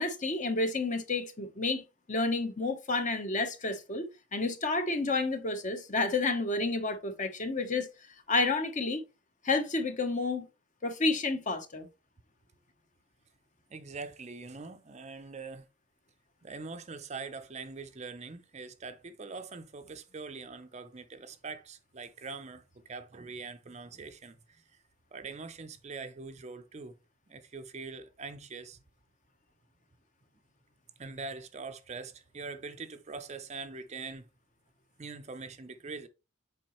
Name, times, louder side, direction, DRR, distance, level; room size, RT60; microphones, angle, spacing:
voice 1, 0.0-1.8 2.1-7.9 8.3-9.0 9.4-10.5 10.8-11.9, left 3 dB, 35° left, 0.9 m, -30 dB
voice 2, 13.7-15.7 16.4-24.6 25.1-27.0 27.3-28.8 31.0-34.3 35.0-36.1, right 4 dB, 30° right, 0.5 m, -43 dB
7.5 x 4.9 x 3.0 m
head